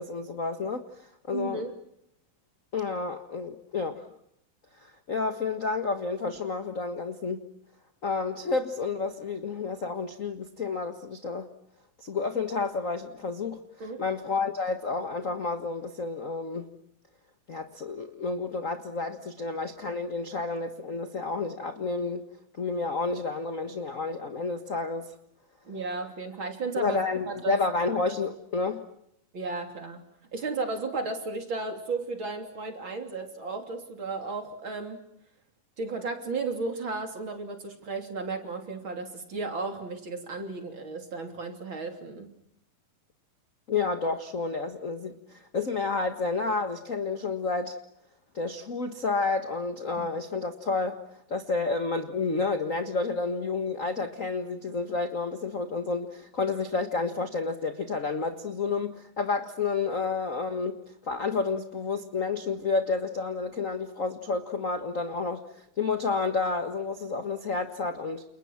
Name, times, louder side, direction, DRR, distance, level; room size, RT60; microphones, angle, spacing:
voice 1, 0.0-1.7 2.7-4.1 4.8-7.4 8.0-11.5 12.0-16.7 17.5-22.2 22.6-25.1 26.8-28.8 43.7-47.8 48.3-51.0 51.3-68.2, left 4 dB, 50° left, 7 dB, 0.9 m, -30 dB
voice 2, 1.3-1.8 13.8-14.0 25.7-27.6 29.3-30.0 30.3-35.0 35.8-42.3 50.0-50.1, right 3 dB, 35° right, 5 dB, 3.6 m, -34 dB
29.5 x 29.5 x 6.0 m, 0.73 s
omnidirectional pair, 4.0 m